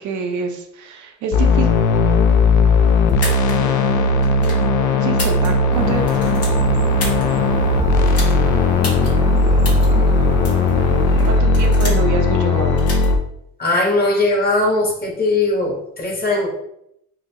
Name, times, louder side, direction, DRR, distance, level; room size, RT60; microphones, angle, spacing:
voice 1, 0.0-1.7 5.0-6.0 11.3-12.9, right 5 dB, 75° right, 3 dB, 0.6 m, -26 dB
sound 1, 1.3-13.2, left 3 dB, 80° left, 0.5 m, -16 dB
sound 2, 3.1-3.5 4.2-4.6 5.1-5.8 6.0-7.2 8.1-8.3 8.8-9.1 9.6-9.9 10.4-10.7 11.2-12.1 12.8-13.1, left 2 dB, 50° left, 1.4 m, -29 dB
sound 3, 5.7-11.4, right 2 dB, 15° right, 0.4 m, -28 dB
voice 2, 13.6-16.5, left 2 dB, 30° left, 0 dB, 1.0 m, -19 dB
4.1 x 2.5 x 2.7 m, 0.77 s
cardioid pair, 90°, 30 cm